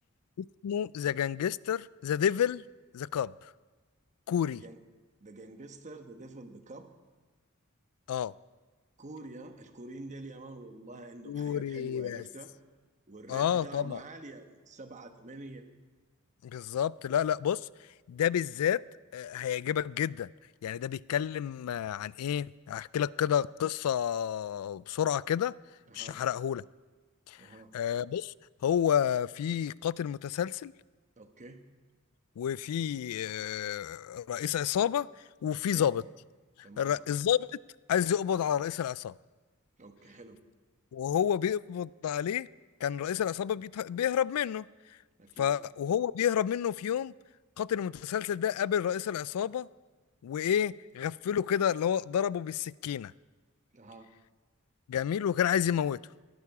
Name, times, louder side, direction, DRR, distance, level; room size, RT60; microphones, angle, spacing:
voice 1, 0.4-2.6 2.9-3.3 4.3-4.6 8.1-8.3 11.3-12.2 13.3-14.0 16.5-17.6 18.1-18.8 19.1-20.3 20.6-25.5 25.9-26.6 27.3-27.4 27.7-28.3 28.6-30.7 32.4-35.1 35.4-36.0 36.8-37.5 37.9-39.1 40.9-42.5 42.8-44.6 45.4-47.1 47.6-49.7 50.2-53.1 54.9-56.0, left 9 dB, 80° left, 22 dB, 0.3 m, -30 dB
voice 2, 4.5-4.8 5.2-6.9 9.0-12.5 13.1-15.6 25.9-26.2 27.4-27.7 31.2-31.6 35.5-35.9 36.6-37.0 39.8-40.4 45.2-45.5 53.7-54.1, right 2 dB, 35° right, 7 dB, 1.1 m, -47 dB
18.0 x 12.0 x 4.8 m, 1.3 s
head